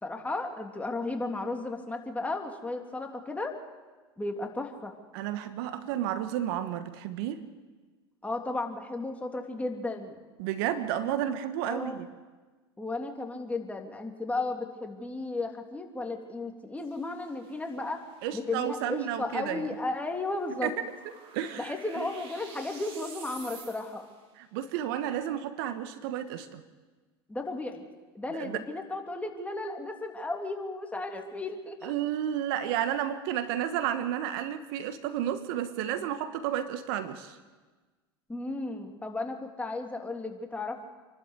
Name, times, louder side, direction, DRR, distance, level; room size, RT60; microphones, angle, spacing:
voice 1, 0.0-3.5 4.2-4.9 8.2-10.2 11.6-12.0 12.8-18.0 18.3-20.7 21.6-24.0 27.3-27.8 28.1-31.9 38.3-40.8, left 2 dB, 10° left, 3 dB, 3.0 m, -34 dB
voice 2, 5.1-7.4 10.4-12.1 18.2-19.7 20.6-20.7 21.3-22.1 24.4-26.6 28.3-28.6 31.8-37.4, right 11 dB, 65° right, 11 dB, 1.3 m, -32 dB
sound 1, 16.8-24.2, right 5 dB, 45° right, 3.9 m, -51 dB
27.5 x 12.0 x 8.1 m, 1.3 s
hypercardioid pair, 85°, 13 cm